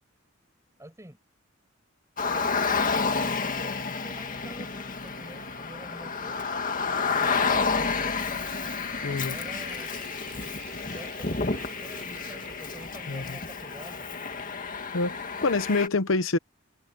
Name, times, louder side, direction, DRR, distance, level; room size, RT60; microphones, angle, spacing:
voice 1, 0.8-1.2 2.3-3.2 3.5-6.5 7.0-8.5 9.1-10.0 10.8-14.1, right 1 dB, 15° right, 5.7 m, -47 dB
Car, 2.2-15.9, left 4 dB, 40° left, 2.0 m, -30 dB
sound 1, 3.0-15.0, right 5 dB, 75° right, 5.6 m, -50 dB
voice 2, 9.0-9.4 13.1-13.4 14.9-15.2 15.4-16.4, left 3 dB, 65° left, 0.8 m, -26 dB
head